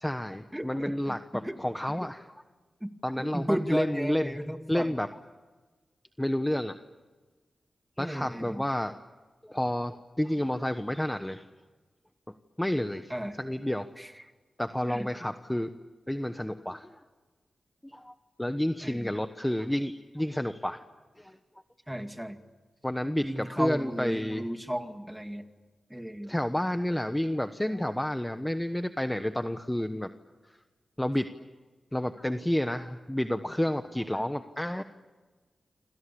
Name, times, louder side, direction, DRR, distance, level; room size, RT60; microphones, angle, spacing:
voice 1, 0.0-2.4 3.0-4.4 4.7-5.1 6.2-6.8 8.0-9.0 9.4-11.4 12.6-13.9 14.6-15.7 16.1-17.0 17.8-20.8 21.2-21.4 22.8-24.4 26.3-30.1 31.0-31.3 31.9-34.8, left 1 dB, 10° left, 9 dB, 1.2 m, -30 dB
voice 2, 0.5-1.2 1.4-1.6 1.9-2.1 2.8-2.9 3.2-4.9 8.0-8.6 13.1-13.4 14.0-14.1 14.9-15.1 18.8-19.1 21.9-22.4 23.2-25.5 25.9-26.3, equal, 5° right, 6 dB, 2.4 m, -34 dB
28.0 x 26.5 x 7.1 m, 1.3 s
cardioid pair, 60°, 0 cm